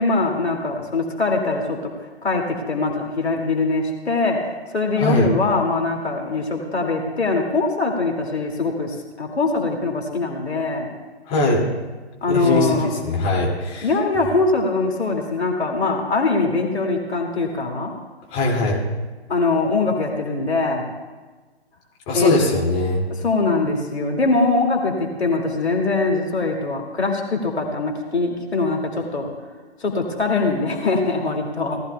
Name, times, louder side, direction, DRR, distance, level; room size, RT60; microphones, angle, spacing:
voice 1, 0.0-1.9 2.2-10.9 12.2-12.9 13.8-17.9 19.3-20.8 22.1-22.3 23.2-29.3 29.8-31.8, left 3 dB, 75° left, 2 dB, 2.4 m, -22 dB
voice 2, 5.0-5.3 11.3-11.6 12.3-13.9 18.3-18.8 22.1-23.0, left 2 dB, 20° left, -3 dB, 2.4 m, -21 dB
18.0 x 14.0 x 2.3 m, 1.3 s
figure-of-eight pair, 140°, 33 cm